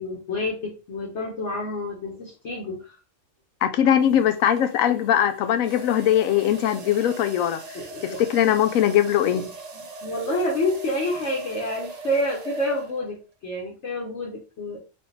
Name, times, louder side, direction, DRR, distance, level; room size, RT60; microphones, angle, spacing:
voice 1, 0.0-3.0 7.7-8.2 9.3-9.5 10.0-13.2 13.4-14.8, left 1 dB, 60° left, 1.2 m, -28 dB
sound 1, 2.1-2.4 4.0-13.2, right 3 dB, 45° right, 0.5 m, -41 dB
voice 2, 3.6-7.6 8.0-9.4, left 10 dB, 85° left, 1.0 m, -21 dB
4.2 x 2.7 x 3.3 m
omnidirectional pair, 1.4 m